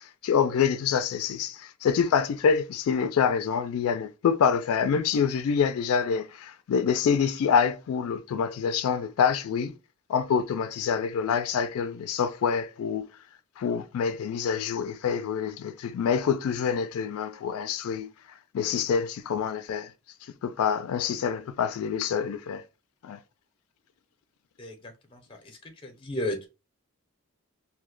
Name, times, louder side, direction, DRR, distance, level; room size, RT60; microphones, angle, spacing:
voice 1, 0.0-9.7 10.1-13.1 13.6-18.1 18.5-19.9 20.4-22.6 23.0-23.2, left 6 dB, 80° left, 0.3 m, -26 dB
voice 2, 24.6-26.5, left 1 dB, 25° left, 0.5 m, -35 dB
2.7 x 2.1 x 3.6 m
head